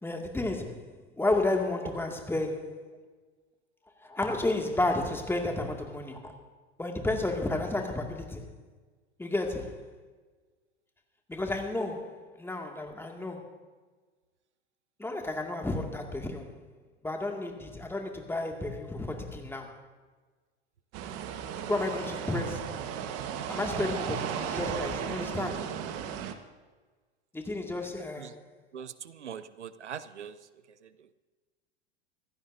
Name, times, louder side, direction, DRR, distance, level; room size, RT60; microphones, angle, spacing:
voice 1, 0.0-3.1 4.0-6.4 6.8-8.5 9.2-9.9 11.3-13.5 15.0-16.7 17.0-19.8 21.7-22.9 23.5-25.9 27.3-28.4, left 2 dB, 5° left, 2.1 m, -32 dB
sound 1, 20.9-26.3, right 8 dB, 45° right, 1.4 m, -35 dB
voice 2, 29.2-30.3, right 8 dB, 80° right, 0.8 m, -40 dB
25.0 x 15.5 x 2.7 m
figure-of-eight pair, 85°, 34 cm